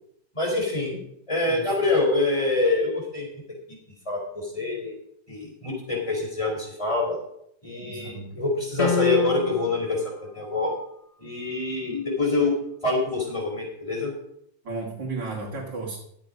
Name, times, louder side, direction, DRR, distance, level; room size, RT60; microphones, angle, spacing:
voice 1, 0.3-0.9 1.3-3.4 4.1-4.9 5.3-7.2 7.6-10.0 10.3-10.7 11.2-12.6 12.8-14.1, left 2 dB, 15° left, -1 dB, 4.2 m, -25 dB
voice 2, 7.8-8.3 14.6-16.0, right 3 dB, 65° right, -2 dB, 2.9 m, -34 dB
sound 1, 8.8-9.8, left 9 dB, 65° left, 0.5 m, -26 dB
13.5 x 8.1 x 5.2 m, 0.72 s
omnidirectional pair, 2.1 m